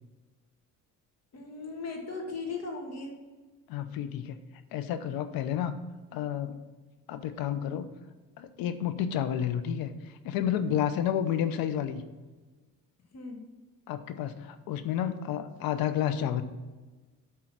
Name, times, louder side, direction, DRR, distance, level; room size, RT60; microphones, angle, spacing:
voice 1, 1.3-3.1 13.1-13.4, left 3 dB, 45° left, 1 dB, 2.0 m, -37 dB
voice 2, 3.7-4.4 4.7-5.7 6.1-6.6 7.1-7.9 8.4-12.0 13.9-16.4, left 9 dB, 80° left, 10 dB, 0.8 m, -30 dB
8.3 x 3.8 x 6.0 m, 1.3 s
cardioid pair, 105°, 35 cm